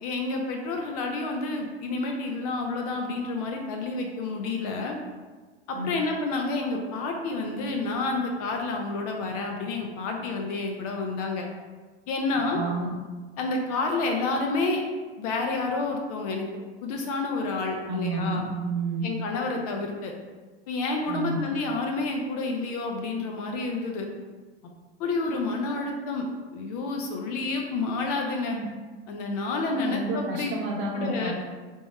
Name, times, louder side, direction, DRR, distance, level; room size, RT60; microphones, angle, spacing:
voice 1, 0.0-5.0 5.7-11.5 12.1-12.6 13.4-14.8 15.2-16.5 16.8-18.4 19.0-20.1 20.7-24.1 25.0-26.3 26.5-28.6 29.1-30.6 30.9-31.3, left 3 dB, 40° left, 2 dB, 0.4 m, -29 dB
voice 2, 12.5-12.9 17.9-19.1 21.1-21.4 28.5-28.6 29.8-31.3, right 3 dB, 35° right, 0 dB, 0.6 m, -30 dB
3.5 x 2.0 x 4.1 m, 1.4 s
supercardioid pair, 150°, 31 cm